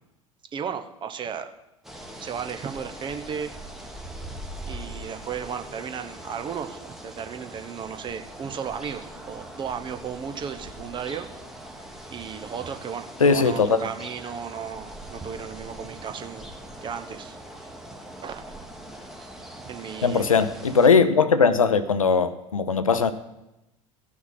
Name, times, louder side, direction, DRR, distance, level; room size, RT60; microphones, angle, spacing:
voice 1, 0.5-1.5 2.2-3.5 4.6-11.3 12.1-16.5 16.8-17.4 18.2-18.6 19.7-20.4, right 7 dB, 25° right, 0.9 m, -35 dB
sound 1, 1.8-20.9, right 1 dB, ahead, 1.4 m, -41 dB
voice 2, 13.2-13.8 20.0-23.1, left 5 dB, 80° left, 0.7 m, -19 dB
15.5 x 6.1 x 5.7 m
figure-of-eight pair, 75°, 17 cm